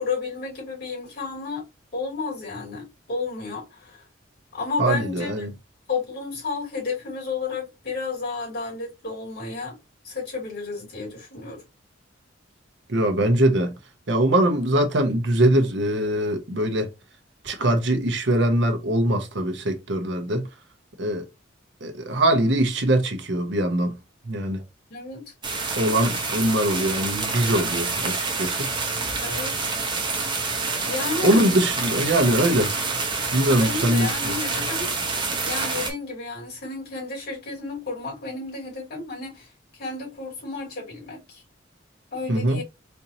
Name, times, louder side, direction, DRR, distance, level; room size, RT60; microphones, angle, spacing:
voice 1, 0.0-1.6 1.9-4.0 4.5-5.5 5.9-9.8 10.0-11.6 24.9-25.3 29.2-29.6 30.8-31.4 33.6-34.9 35.4-41.4 42.1-42.6, left 4 dB, 55° left, 2.7 m, -32 dB
voice 2, 4.8-5.5 12.9-13.7 14.1-16.9 17.4-20.5 21.0-21.2 21.8-24.0 24.2-24.6 25.7-28.7 31.2-32.8 33.3-34.3 42.3-42.6, right 1 dB, 65° right, 1.0 m, -22 dB
sound 1, 25.4-35.9, right 4 dB, 25° right, 0.9 m, -27 dB
4.4 x 2.7 x 2.8 m
head